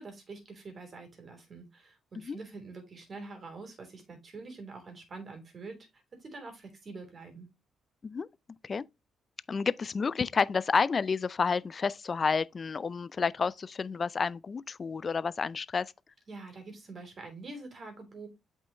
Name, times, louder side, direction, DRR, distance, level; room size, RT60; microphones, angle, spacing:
voice 1, 0.0-5.8 6.1-7.5 16.3-18.3, right 3 dB, 45° right, 3.1 m, -45 dB
voice 2, 9.5-15.9, left 5 dB, 40° left, 0.4 m, -30 dB
8.2 x 5.5 x 3.0 m
cardioid pair, 90°, 0 cm